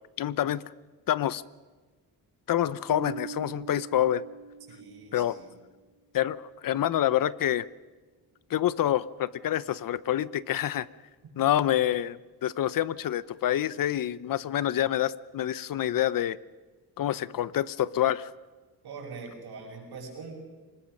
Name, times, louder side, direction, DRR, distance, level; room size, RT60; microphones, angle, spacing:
voice 1, 0.2-0.6 1.1-1.4 2.5-4.2 5.1-5.4 6.1-7.7 8.5-10.9 11.4-16.4 17.0-18.3, left 11 dB, 60° left, 18 dB, 0.7 m, -27 dB
Bass guitar, 2.9-5.5, right 6 dB, 55° right, 2.4 m, -42 dB
voice 2, 4.7-5.5 11.4-11.5 18.8-20.3, right 4 dB, 80° right, 0 dB, 7.3 m, -43 dB
24.5 x 20.5 x 6.5 m, 1.3 s
wide cardioid pair, 140°, 38 cm